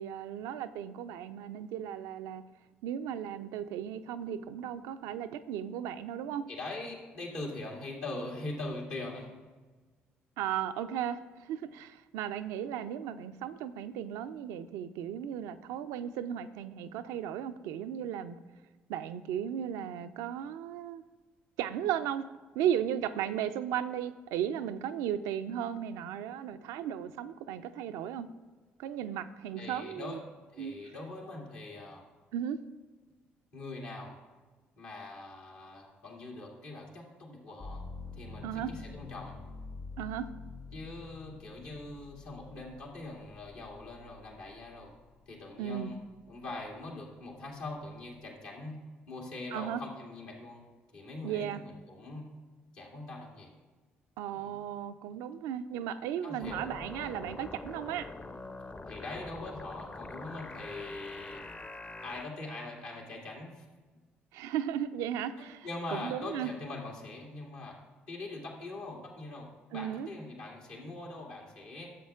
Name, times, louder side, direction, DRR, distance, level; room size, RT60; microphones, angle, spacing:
voice 1, 0.0-2.4 2.8-6.4 10.4-18.4 18.9-21.0 21.6-22.2 22.5-28.3 28.8-30.2 30.6-30.8 32.3-32.6 38.4-38.7 40.0-40.3 45.6-45.9 49.5-49.8 51.2-51.6 54.2-58.1 64.3-66.5 69.7-70.1, right 10 dB, 75° right, 10 dB, 0.4 m, -35 dB
voice 2, 6.5-9.3 29.6-30.2 30.5-32.0 33.5-34.2 34.8-37.8 38.1-39.4 40.7-44.9 45.3-46.0 46.3-48.8 49.1-50.6 50.9-52.3 52.7-53.5 54.3-54.6 56.2-56.6 58.9-61.4 62.0-63.6 65.4-67.8 68.1-71.9, left 2 dB, 80° left, -3 dB, 2.0 m, -42 dB
sound 1, 37.6-45.4 45.9-46.7, left 4 dB, 60° left, 1.4 m, -47 dB
sound 2, 56.4-62.2, left 3 dB, 25° left, 0.6 m, -44 dB
13.0 x 7.2 x 2.4 m, 1.4 s
hypercardioid pair, 50°, 6 cm